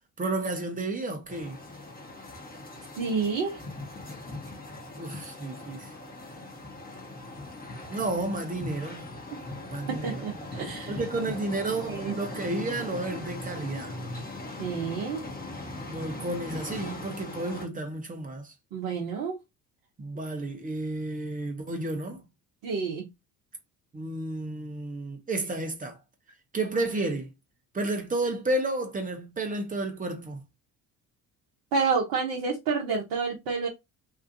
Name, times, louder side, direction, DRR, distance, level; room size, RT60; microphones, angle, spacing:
voice 1, 0.2-1.6 5.0-5.9 7.9-9.1 9.7-10.2 10.9-14.0 15.9-18.5 20.0-22.2 23.9-26.0 26.5-27.3 27.7-30.4, right 2 dB, 15° right, 0.8 m, -31 dB
sound 1, 1.3-17.7, left 2 dB, 20° left, 1.0 m, -40 dB
voice 2, 3.0-3.6 9.9-11.0 11.9-12.2 14.6-15.2 18.7-19.4 22.6-23.1 31.7-33.7, right 5 dB, 60° right, 1.0 m, -29 dB
2.8 x 2.3 x 2.6 m
figure-of-eight pair, 55°, 49 cm